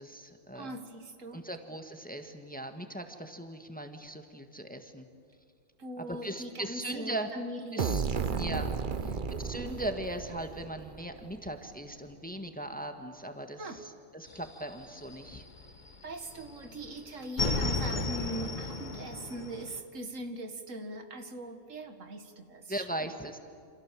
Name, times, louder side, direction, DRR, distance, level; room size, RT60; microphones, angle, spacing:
voice 1, 0.0-0.8 1.3-5.1 6.0-7.3 7.7-8.0 8.4-8.7 9.0-15.4 22.7-23.4, right 1 dB, 5° left, 6 dB, 1.6 m, -39 dB
voice 2, 0.5-1.4 5.8-8.6 9.0-9.2 13.6-13.8 16.0-23.1, right 1 dB, 75° right, 7 dB, 2.1 m, -41 dB
sound 1, 7.8-11.4, right 6 dB, 45° right, 1.0 m, -34 dB
sound 2, 14.3-16.0 16.3-19.8, left 2 dB, 35° left, 1.8 m, -34 dB
29.0 x 27.0 x 7.6 m, 2.3 s
omnidirectional pair, 1.3 m